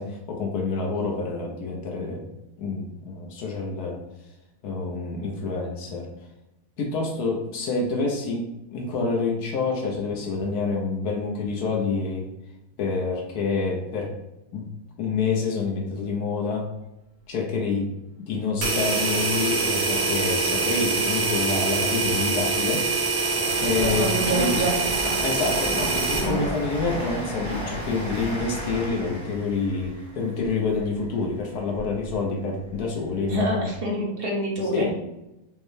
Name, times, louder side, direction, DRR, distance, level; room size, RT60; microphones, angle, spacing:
voice 1, 0.0-2.3 2.6-4.0 4.6-6.1 6.8-12.3 12.8-14.1 14.5-14.6 15.0-16.7 17.3-17.9 18.2-22.9 23.6-24.6 25.2-33.7 34.7-34.9, left 4 dB, 85° left, 0 dB, 1.3 m, -27 dB
sound 1, 18.6-26.3, right 3 dB, 80° right, 1.5 m, -24 dB
Train, 22.7-32.2 32.6-33.5 33.7-33.8, equal, 20° right, 0.9 m, -34 dB
voice 2, 23.7-25.1 26.2-26.4 33.3-34.9, right 1 dB, 40° right, -3 dB, 1.1 m, -27 dB
5.2 x 2.2 x 3.2 m, 0.93 s
omnidirectional pair, 1.6 m